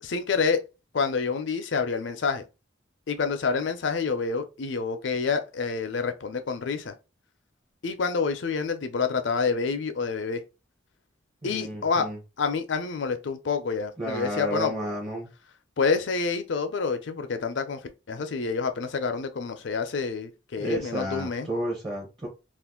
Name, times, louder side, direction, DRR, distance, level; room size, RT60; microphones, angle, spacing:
voice 1, 0.0-0.6 0.9-2.4 3.1-6.9 7.8-10.4 11.4-12.1 12.4-14.7 15.8-17.8 18.1-21.5, left 5 dB, 75° left, 0.5 m, -28 dB
voice 2, 11.4-12.2 14.0-15.3 20.6-22.3, right 1 dB, 25° right, 0.7 m, -32 dB
2.5 x 2.5 x 3.6 m
head